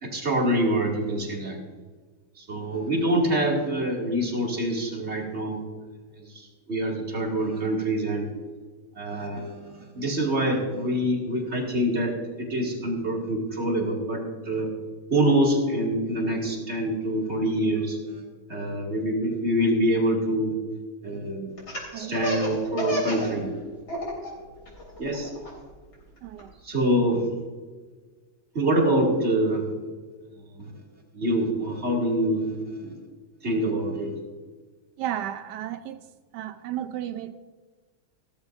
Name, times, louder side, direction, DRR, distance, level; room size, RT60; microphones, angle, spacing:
voice 1, 0.0-1.6 2.4-5.6 6.2-8.3 9.0-12.1 12.4-14.7 15.1-18.2 18.5-20.5 21.0-21.5 21.9-23.5 24.3-24.5 25.0-25.3 26.6-27.2 28.5-29.7 30.5-30.7 31.1-32.6 32.8-33.0 33.4-34.1, right 1 dB, 30° right, -1 dB, 2.7 m, -25 dB
Laughter, 21.6-23.3 23.6-24.3 24.7-26.4, equal, 45° left, 4.2 m, -30 dB
voice 2, 26.2-26.5 35.0-36.0 36.3-37.3, right 11 dB, 80° right, 10 dB, 0.9 m, -33 dB
17.0 x 13.5 x 2.6 m, 1.4 s
omnidirectional pair, 2.3 m